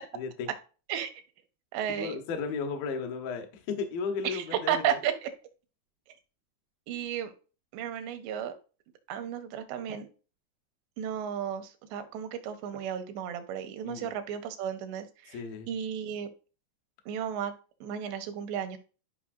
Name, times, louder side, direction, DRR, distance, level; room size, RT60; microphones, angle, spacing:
voice 1, 0.1-0.5 1.9-5.0 13.8-14.1 15.3-15.7, left 5 dB, 70° left, 5 dB, 2.3 m, -34 dB
voice 2, 1.7-2.2 4.2-5.3 6.9-7.3 7.7-8.5 9.1-10.1 11.0-15.4 15.7-16.3 17.1-17.5 17.8-18.8, right 9 dB, 85° right, 8 dB, 2.8 m, -33 dB
12.0 x 5.4 x 2.6 m, 0.36 s
omnidirectional pair, 5.2 m